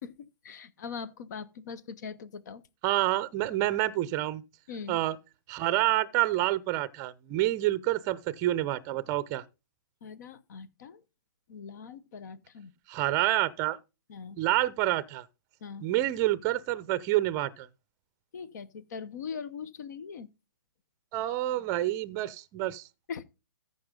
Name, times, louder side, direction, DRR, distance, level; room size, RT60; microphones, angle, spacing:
voice 1, 0.0-2.6 4.7-5.0 10.0-11.0 11.5-12.7 14.1-14.4 15.6-15.9 18.3-20.3 23.1-23.2, left 6 dB, 50° left, 1.0 m, -41 dB
voice 2, 2.8-4.4 4.9-5.2 5.5-9.4 12.9-13.8 14.4-15.2 15.8-17.7 21.1-22.9, right 15 dB, 25° right, 0.6 m, -28 dB
14.0 x 5.6 x 3.8 m
figure-of-eight pair, 130°, 12 cm